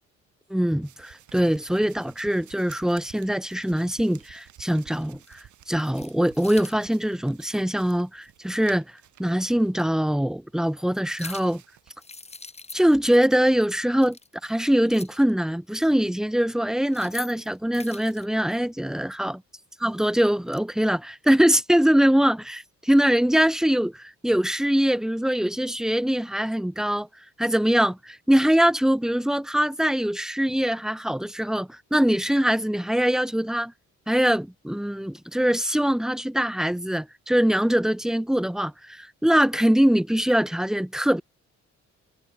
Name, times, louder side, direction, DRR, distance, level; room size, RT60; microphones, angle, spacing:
voice 1, 0.5-8.8 9.2-11.6 12.7-14.2 14.4-19.3 19.8-27.1 27.4-33.7 34.1-41.2, equal, ahead, 1.1 m, -23 dB
sound 1, 0.8-10.2 10.5-11.9, right 12 dB, 75° right, 5.8 m, -52 dB
sound 2, 4.1-4.2 5.0-5.4 5.7-6.8 8.6-8.7 9.7-9.8 11.0-11.6 12.0-13.2 13.5-13.6 13.9-15.3 16.7-18.3 19.9-20.6, left 3 dB, 20° left, 7.9 m, -43 dB
cardioid pair, 90°, 30 cm